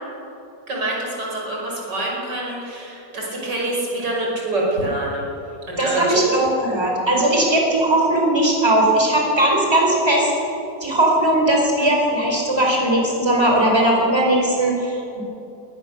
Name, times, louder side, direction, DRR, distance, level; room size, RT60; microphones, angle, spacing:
voice 1, 0.7-5.3 5.7-6.4, right 2 dB, 85° right, -3 dB, 5.9 m, -25 dB
voice 2, 5.8-10.3 10.8-15.2, right 1 dB, 15° right, -1 dB, 4.6 m, -18 dB
21.0 x 19.0 x 7.0 m, 2.9 s
omnidirectional pair, 1.8 m